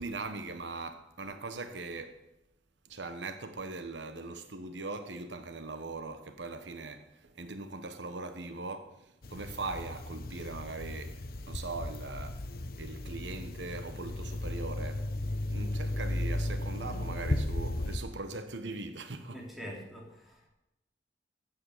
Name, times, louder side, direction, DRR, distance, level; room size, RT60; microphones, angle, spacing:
voice 1, 0.0-2.2 2.9-12.5 12.8-15.1 15.5-19.4, right 3 dB, 80° right, 1.2 m, -40 dB
sound 1, 9.2-18.0, left 1 dB, 55° left, 1.0 m, -35 dB
voice 2, 19.3-20.5, equal, ahead, 3.6 m, -45 dB
14.5 x 8.8 x 6.6 m
head